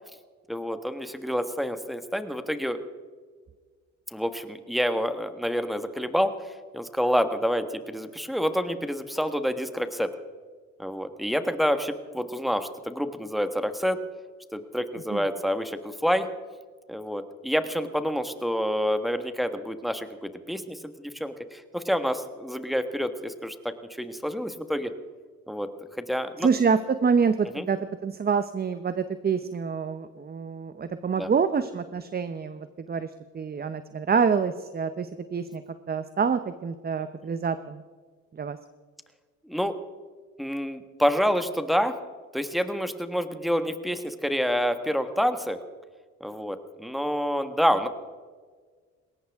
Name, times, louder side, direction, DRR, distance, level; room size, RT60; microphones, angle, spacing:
voice 1, 0.5-2.8 4.1-10.1 10.8-14.0 14.5-16.3 16.9-24.9 25.5-25.7 26.0-26.5 27.5-27.7 31.2-31.3 39.4-39.8 40.4-41.9 42.3-45.6 46.2-47.9, equal, ahead, 9 dB, 1.4 m, -28 dB
voice 2, 26.4-33.1 33.3-35.6 35.9-37.8 38.4-38.6, right 6 dB, 30° right, 11 dB, 0.8 m, -26 dB
21.0 x 18.0 x 3.6 m, 1.5 s
cardioid pair, 90°, 30 cm